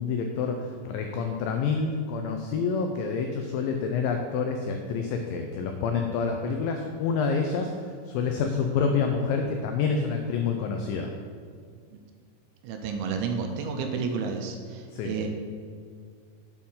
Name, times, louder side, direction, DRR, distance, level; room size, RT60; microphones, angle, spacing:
voice 1, 0.0-11.1 14.9-15.1, left 5 dB, 85° left, 4 dB, 2.0 m, -28 dB
voice 2, 12.6-15.3, right 5 dB, 80° right, 4 dB, 2.4 m, -31 dB
8.6 x 4.3 x 5.5 m, 2.1 s
omnidirectional pair, 4.6 m